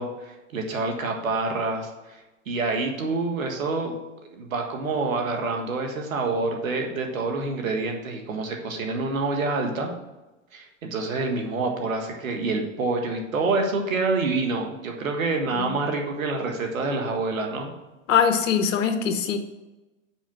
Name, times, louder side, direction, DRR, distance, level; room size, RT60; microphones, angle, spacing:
voice 1, 0.0-3.9 4.3-9.9 10.5-17.7, right 3 dB, 85° right, 3 dB, 1.7 m, -27 dB
voice 2, 18.1-19.4, left 7 dB, 70° left, 7 dB, 1.3 m, -22 dB
6.3 x 5.1 x 5.9 m, 1.1 s
hypercardioid pair, 115°, 39 cm